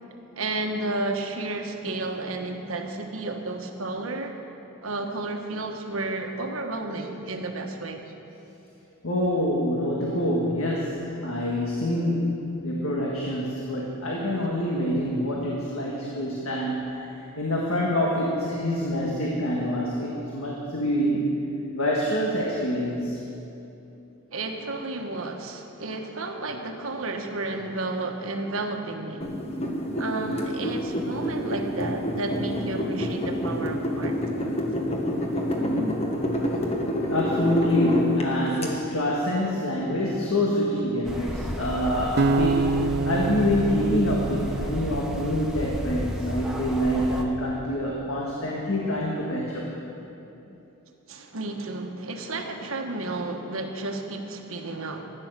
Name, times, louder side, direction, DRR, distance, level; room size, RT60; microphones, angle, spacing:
voice 1, 0.3-4.4 4.8-8.0 24.3-29.3 30.0-34.2 51.1-55.1, right 2 dB, 70° right, 4 dB, 1.2 m, -32 dB
voice 2, 9.0-17.0 17.4-21.3 21.7-23.2 35.5-36.2 37.1-49.7, equal, 70° left, -3 dB, 1.7 m, -26 dB
sound 1, 29.2-38.7, equal, 30° left, 1.5 m, -28 dB
sound 2, 41.0-47.2, equal, 5° right, 0.9 m, -33 dB
sound 3, 42.2-45.3, right 3 dB, 50° right, 0.4 m, -26 dB
14.5 x 9.6 x 6.6 m, 2.9 s
head